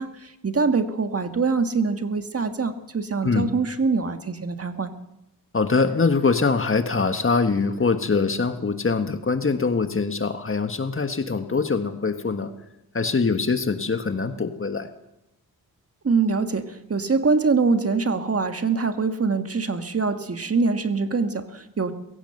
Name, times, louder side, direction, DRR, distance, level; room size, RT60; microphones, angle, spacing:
voice 1, 0.0-4.9 16.0-21.9, right 4 dB, 40° right, 8 dB, 1.5 m, -24 dB
voice 2, 5.5-12.5 12.9-14.9, left 4 dB, 35° left, 8 dB, 1.6 m, -23 dB
22.0 x 16.5 x 7.9 m, 0.91 s
wide cardioid pair, 110°, 37 cm